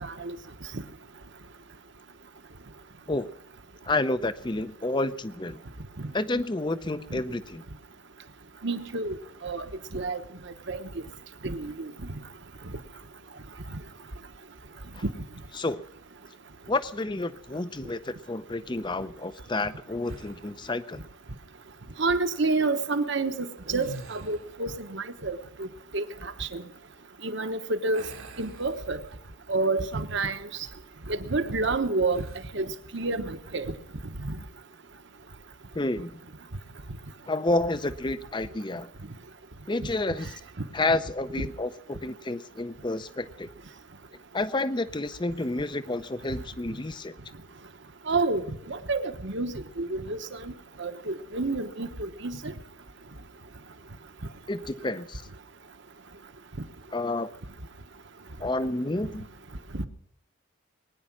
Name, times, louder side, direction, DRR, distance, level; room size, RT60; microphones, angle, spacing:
voice 1, 0.0-0.4 0.7-0.8 6.0-6.1 7.1-7.2 8.6-9.2 9.4-9.7 9.9-10.2 10.7-10.8 11.4-11.9 15.0-15.1 22.0-25.7 25.9-26.6 27.2-28.0 28.4-29.0 29.5-30.4 31.1-32.2 32.5-33.7 41.4-41.5 48.1-50.5 50.8-52.5 59.7-59.9, right 3 dB, 55° right, 9 dB, 1.1 m, -29 dB
voice 2, 3.9-5.6 6.1-7.6 14.9-15.0 15.6-15.8 16.7-21.0 35.7-36.2 37.3-38.9 39.7-40.3 40.7-43.5 44.3-47.1 54.5-55.2 56.9-57.3 58.4-59.3, left 2 dB, 20° left, 14 dB, 0.5 m, -30 dB
sound 1, 20.0-20.7 23.6-24.7 27.9-29.4 29.8-30.0 32.1-32.6, right 2 dB, 75° right, 1.8 m, -45 dB
21.5 x 10.0 x 6.1 m, 0.69 s
head